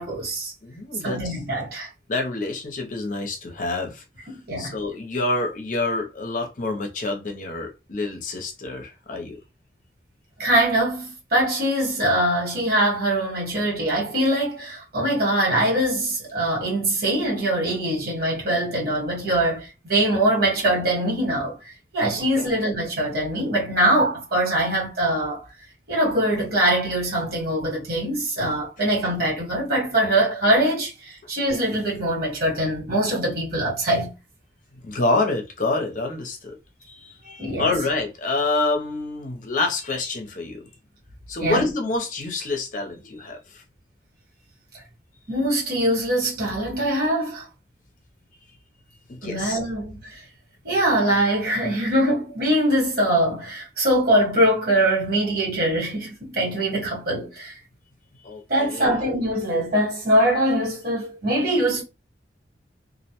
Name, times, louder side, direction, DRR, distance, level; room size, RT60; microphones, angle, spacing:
voice 1, 0.0-0.5 1.0-1.9 4.3-4.7 10.4-25.4 25.9-34.1 37.4-37.7 41.4-41.7 45.3-47.5 49.2-50.2 50.6-57.6 58.5-61.8, right 1 dB, 60° right, 1.4 m, -23 dB
voice 2, 0.6-1.3 2.1-4.0 4.6-9.4 22.1-22.5 34.8-40.7 41.3-43.6 49.1-49.6 58.2-59.0, left 2 dB, 45° left, 0.6 m, -27 dB
2.4 x 2.1 x 2.8 m
head